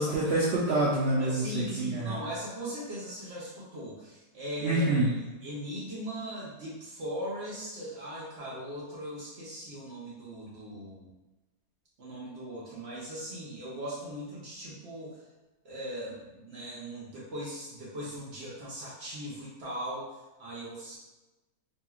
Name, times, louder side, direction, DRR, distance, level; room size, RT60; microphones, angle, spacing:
voice 1, 0.0-2.2 4.6-5.1, right 2 dB, 75° right, -6 dB, 0.5 m, -27 dB
voice 2, 1.2-5.1 5.4-11.1 12.0-15.2 15.6-21.0, equal, 55° right, -6 dB, 0.8 m, -39 dB
2.9 x 2.8 x 2.3 m, 1.1 s
omnidirectional pair, 1.7 m